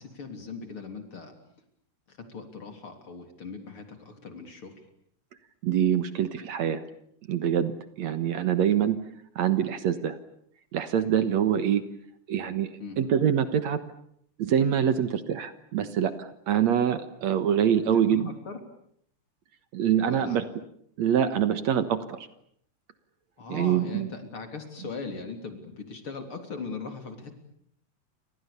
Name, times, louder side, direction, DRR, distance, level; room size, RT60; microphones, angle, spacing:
voice 1, 0.0-1.3 2.1-4.7 12.8-13.0 17.9-18.6 20.1-20.4 23.4-27.3, left 4 dB, 45° left, 6 dB, 4.2 m, -39 dB
voice 2, 5.6-6.8 7.3-9.0 9.4-10.2 10.7-11.8 12.3-12.7 13.0-13.8 14.4-18.3 19.7-20.4 21.0-22.2 23.5-24.1, right 9 dB, 65° right, 11 dB, 2.4 m, -25 dB
30.0 x 26.0 x 7.0 m, 0.68 s
omnidirectional pair, 3.6 m